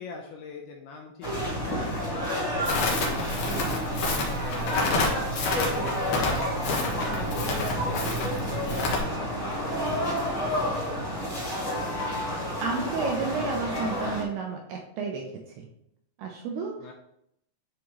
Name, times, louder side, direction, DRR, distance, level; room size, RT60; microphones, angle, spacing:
voice 1, 0.0-2.1 2.4-5.4 5.7-12.0 16.8-16.9, left 4 dB, 80° left, 1 dB, 2.4 m, -42 dB
sound 1, 1.2-14.2, equal, 30° left, 1.3 m, -30 dB
Crackle, 2.7-9.0, left 2 dB, 60° left, 2.3 m, -29 dB
voice 2, 12.6-15.7 16.2-16.9, right 4 dB, 75° right, 1 dB, 2.4 m, -32 dB
10.0 x 5.0 x 3.1 m, 0.74 s
omnidirectional pair, 5.4 m